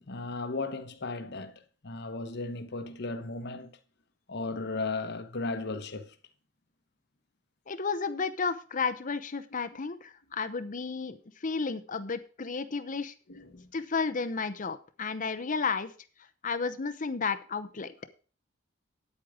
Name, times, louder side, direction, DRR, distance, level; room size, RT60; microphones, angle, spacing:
voice 1, 0.0-3.7 4.3-6.1 13.3-13.7, left 3 dB, 60° left, 1.1 m, -36 dB
voice 2, 7.7-13.1 13.7-15.9 16.4-17.9, left 4 dB, 40° left, 0.8 m, -32 dB
9.4 x 8.7 x 4.9 m
head